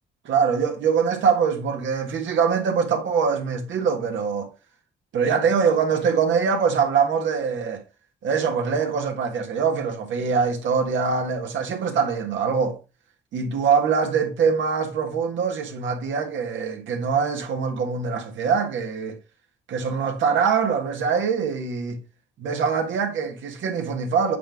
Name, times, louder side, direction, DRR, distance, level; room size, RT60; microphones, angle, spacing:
voice 1, 0.2-4.5 5.1-7.8 8.2-12.8 13.3-19.2 19.7-22.0 22.4-24.4, right 6 dB, 75° right, 1.6 m, -23 dB
8.5 x 3.7 x 3.6 m
cardioid pair, 90°, 20 cm